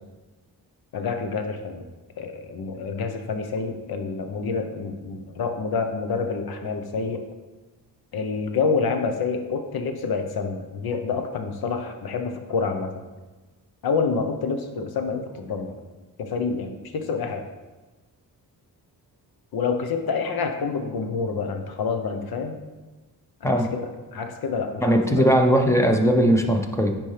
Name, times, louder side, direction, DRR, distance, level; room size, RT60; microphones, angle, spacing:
voice 1, 0.9-1.8 2.2-7.2 8.1-13.0 13.8-15.7 16.2-17.4 19.5-22.6 23.4-25.2, left 5 dB, 65° left, 6 dB, 0.9 m, -28 dB
voice 2, 24.8-27.0, equal, 5° left, 4 dB, 0.8 m, -19 dB
9.9 x 4.5 x 3.3 m, 1.2 s
cardioid pair, 85°, 39 cm